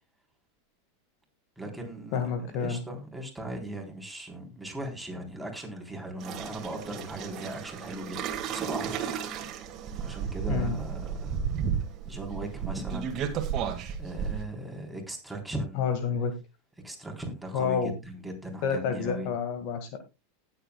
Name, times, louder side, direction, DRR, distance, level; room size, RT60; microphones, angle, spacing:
voice 1, 1.6-9.6 10.0-11.4 12.0-13.2 14.0-15.9 16.8-19.3, right 1 dB, 5° right, 3.8 m, -38 dB
voice 2, 2.1-2.8 10.5-10.8 15.8-16.3 17.5-17.9 18.6-20.0, left 6 dB, 55° left, 1.9 m, -29 dB
sound 1, 6.2-14.4, right 7 dB, 40° right, 2.0 m, -33 dB
19.0 x 7.8 x 2.3 m
hypercardioid pair, 90°, 0 cm